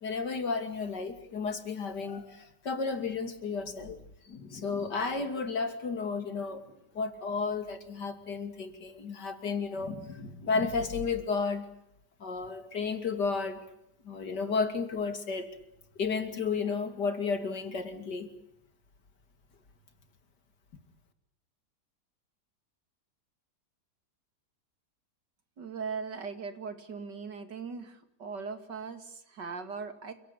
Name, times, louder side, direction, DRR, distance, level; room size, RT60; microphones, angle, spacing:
voice 1, 0.0-11.7 12.2-13.6 14.0-15.6 16.0-18.3, left 4 dB, 75° left, 9 dB, 3.3 m, -33 dB
voice 2, 25.6-30.1, right 5 dB, 85° right, 9 dB, 3.1 m, -39 dB
29.0 x 17.5 x 10.0 m, 0.80 s
omnidirectional pair, 1.8 m